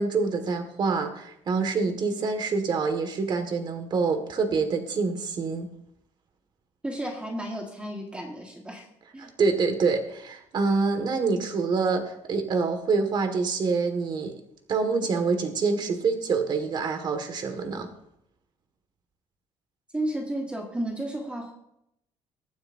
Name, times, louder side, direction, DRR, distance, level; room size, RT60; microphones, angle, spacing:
voice 1, 0.0-5.7 9.2-14.4 14.7-17.9, right 4 dB, 40° right, 7 dB, 1.8 m, -26 dB
voice 2, 6.8-8.8 9.1-9.3 19.9-21.5, right 1 dB, 10° right, 0 dB, 1.6 m, -32 dB
23.0 x 9.4 x 2.7 m, 0.79 s
cardioid pair, 175°, 12 cm